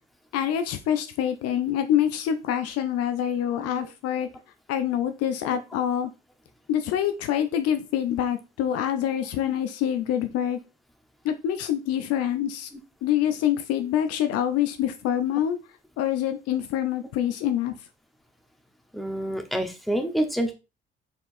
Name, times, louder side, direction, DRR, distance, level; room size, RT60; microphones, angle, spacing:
voice 1, 0.3-4.3 4.7-6.1 6.7-10.6 11.2-12.7 13.0-15.6 16.0-17.8, left 10 dB, 55° left, 8 dB, 0.6 m, -26 dB
voice 2, 18.9-20.5, right 1 dB, ahead, 4 dB, 1.0 m, -27 dB
4.3 x 4.0 x 2.6 m, 0.28 s
figure-of-eight pair, 50°, 29 cm